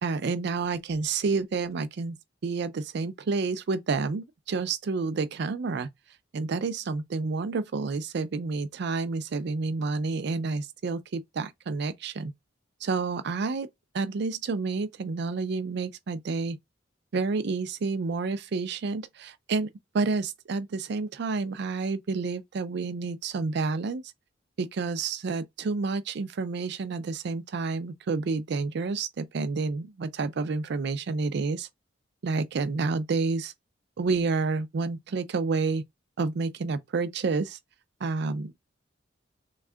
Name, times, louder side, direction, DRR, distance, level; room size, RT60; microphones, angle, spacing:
voice 1, 0.0-2.2 2.4-5.9 6.3-12.3 12.8-13.7 13.9-16.6 17.1-19.7 19.9-24.0 24.6-31.7 32.2-33.5 34.0-35.8 36.2-37.6 38.0-38.6, right 4 dB, 60° right, 0.4 m, -29 dB
3.5 x 2.3 x 3.3 m
head